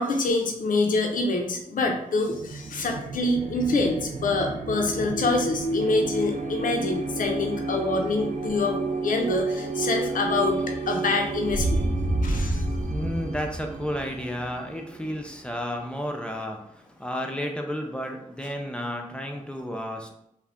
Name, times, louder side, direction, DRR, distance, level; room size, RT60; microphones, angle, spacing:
voice 1, 0.0-11.8 12.2-12.6, left 2 dB, 75° left, 2 dB, 0.4 m, -26 dB
sound 1, 2.3-15.7, right 2 dB, 65° right, 0.4 m, -30 dB
voice 2, 12.0-20.1, equal, 5° left, 2 dB, 0.4 m, -32 dB
2.4 x 2.1 x 3.3 m, 0.79 s
cardioid pair, 60°, 14 cm